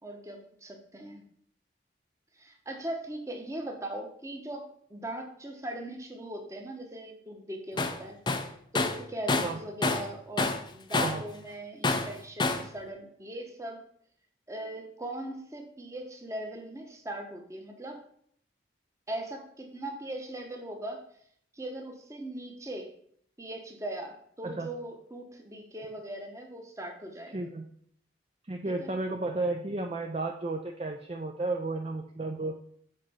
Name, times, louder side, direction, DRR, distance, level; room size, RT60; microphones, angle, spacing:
voice 1, 0.0-1.2 2.4-8.2 8.7-13.8 14.5-18.0 19.1-21.0 21.5-22.9 23.4-27.5 28.6-28.9, right 1 dB, 15° right, 3 dB, 1.0 m, -39 dB
Tools, 7.8-8.0 8.3-10.1 10.4-11.3 11.8-12.7, left 3 dB, 25° left, 0.5 m, -28 dB
voice 2, 27.3-27.7 28.5-32.5, right 2 dB, 30° right, 3 dB, 0.5 m, -33 dB
7.4 x 4.0 x 5.6 m, 0.65 s
head